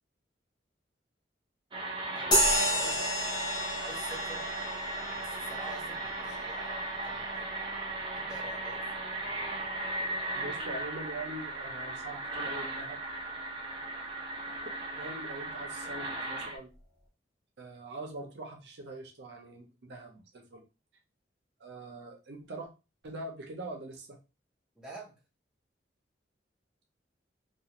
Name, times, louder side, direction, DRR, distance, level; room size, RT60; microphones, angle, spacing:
sound 1, 1.7-16.6, right 2 dB, 25° right, 0.5 m, -37 dB
voice 1, 2.1-3.1 3.8-4.5 5.2-7.5 8.1-9.0 24.7-25.2, right 1 dB, 5° right, -7 dB, 0.9 m, -47 dB
sound 2, 2.3-10.2, equal, 20° left, 0.8 m, -33 dB
voice 2, 10.3-13.0 15.0-16.7 17.6-20.6 21.6-22.7 23.0-24.2, right 2 dB, 65° right, 2 dB, 0.6 m, -43 dB
2.4 x 2.4 x 2.9 m, 0.28 s
head